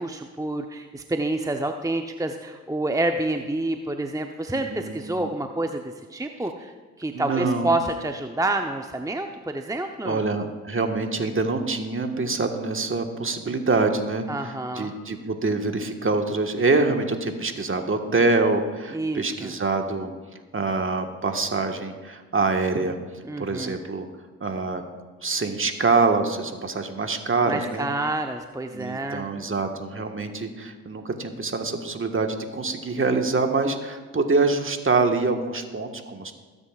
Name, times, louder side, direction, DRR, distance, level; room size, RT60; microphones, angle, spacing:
voice 1, 0.0-5.8 6.1-6.7 7.0-10.2 14.3-14.9 18.9-19.6 23.2-23.8 27.5-29.3, right 2 dB, 10° right, 5 dB, 0.9 m, -28 dB
voice 2, 4.5-5.3 7.1-7.7 10.0-20.1 20.5-23.0 23.4-24.1 24.4-24.8 25.2-27.9 28.7-36.3, right 3 dB, 35° right, 5 dB, 1.6 m, -25 dB
21.0 x 9.7 x 2.5 m, 1.4 s
hypercardioid pair, 40°, 37 cm